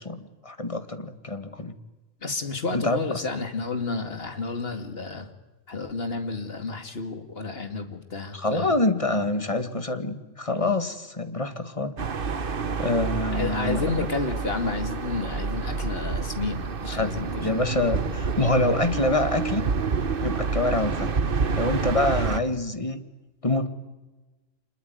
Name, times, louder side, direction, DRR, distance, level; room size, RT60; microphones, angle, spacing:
voice 1, 0.0-1.7 2.7-3.2 8.3-11.9 12.8-13.8 16.9-19.6 20.2-21.1 21.5-23.0 23.4-23.7, left 2 dB, 25° left, 9 dB, 1.9 m, -26 dB
voice 2, 2.2-5.3 5.7-8.7 13.3-17.6, left 4 dB, 50° left, 7 dB, 2.6 m, -31 dB
sound 1, 12.0-22.4, right 5 dB, 45° right, 1.2 m, -28 dB
26.5 x 21.5 x 9.4 m, 1.1 s
omnidirectional pair, 1.3 m